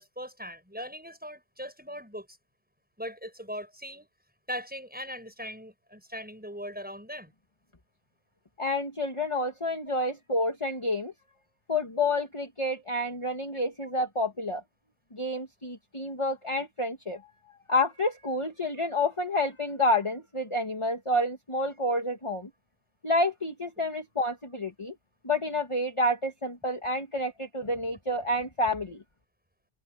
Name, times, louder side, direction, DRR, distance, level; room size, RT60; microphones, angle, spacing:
voice 1, 0.0-2.4 3.0-4.1 4.5-7.3 10.0-10.1 13.5-13.6, equal, 10° right, 7.6 m, -40 dB
voice 2, 8.6-11.1 11.7-14.6 15.1-17.2 17.7-22.5 23.0-24.9 25.2-29.0, left 1 dB, 25° left, 2.1 m, -29 dB
omnidirectional pair, 1.2 m